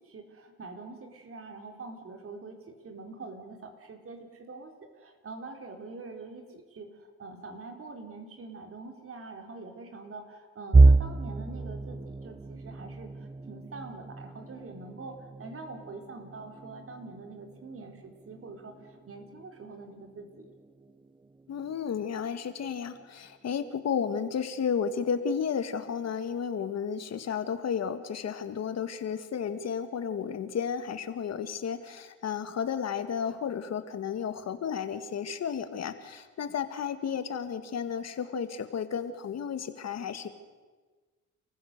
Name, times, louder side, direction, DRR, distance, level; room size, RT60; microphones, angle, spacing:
voice 1, 0.1-20.5, right 3 dB, 45° right, 4 dB, 3.9 m, -45 dB
sound 1, 10.7-22.6 23.0-23.3 23.6-23.8 24.7-25.1, right 3 dB, 15° right, 0.6 m, -29 dB
voice 2, 21.5-40.3, left 7 dB, 60° left, 10 dB, 1.9 m, -33 dB
30.0 x 15.0 x 6.7 m, 1.4 s
cardioid pair, 90°, 30 cm